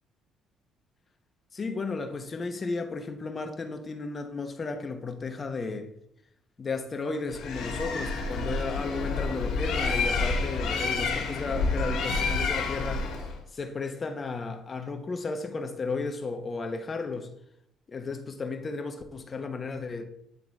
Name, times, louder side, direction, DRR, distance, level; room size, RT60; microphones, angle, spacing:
voice 1, 1.5-5.9 6.6-13.1 13.5-17.3 17.9-20.0, left 4 dB, 35° left, 1.0 m, -34 dB
Bird, 7.3-13.4, left 3 dB, 80° left, 1.7 m, -29 dB
9.3 x 3.8 x 3.6 m
cardioid pair, 85°, 0 cm